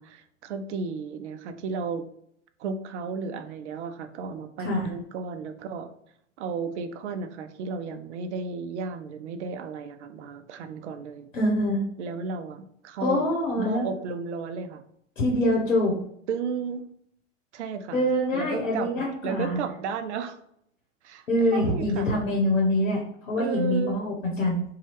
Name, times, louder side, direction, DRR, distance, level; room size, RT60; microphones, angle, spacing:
voice 1, 0.0-2.1 2.6-5.9 6.4-11.3 12.0-13.3 13.6-14.8 16.3-16.9 17.5-18.0 18.3-20.4 21.0-22.1 23.4-24.0, right 5 dB, 65° right, 9 dB, 0.5 m, -33 dB
voice 2, 4.6-4.9 11.3-11.8 13.0-13.9 15.2-15.9 17.9-19.6 21.3-24.6, left 1 dB, 80° left, -3 dB, 0.9 m, -25 dB
2.7 x 2.3 x 3.0 m, 0.68 s
figure-of-eight pair, 95°, 38 cm